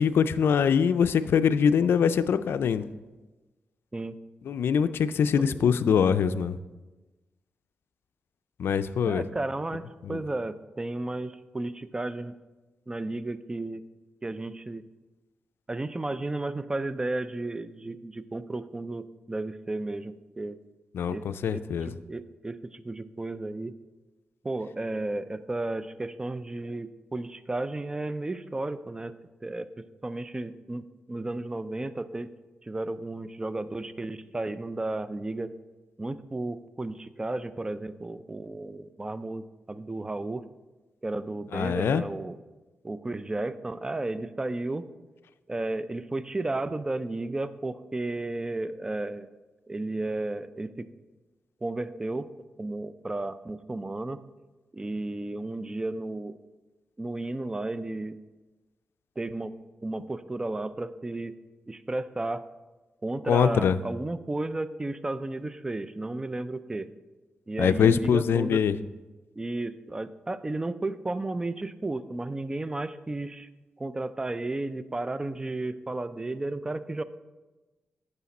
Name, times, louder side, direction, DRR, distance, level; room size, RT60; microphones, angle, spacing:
voice 1, 0.0-2.8 4.5-6.6 8.6-9.2 10.0-10.2 20.9-21.9 41.5-42.0 63.3-63.8 67.6-68.7, left 7 dB, 80° left, 13 dB, 0.4 m, -23 dB
voice 2, 5.4-5.7 9.1-12.3 12.9-13.8 14.2-14.8 15.7-20.6 21.1-23.8 24.4-29.1 29.4-29.7 30.0-32.3 32.6-35.5 36.0-40.4 41.0-42.4 42.8-44.8 45.5-49.3 49.7-50.9 51.6-52.3 52.6-54.2 54.7-56.4 57.0-58.2 59.2-59.5 59.8-61.4 61.7-62.4 63.0-66.9 67.5-68.7 69.4-73.5 73.8-77.0, right 2 dB, 20° right, 13 dB, 0.4 m, -33 dB
8.2 x 6.6 x 4.1 m, 1.2 s
cardioid pair, 85°, 4 cm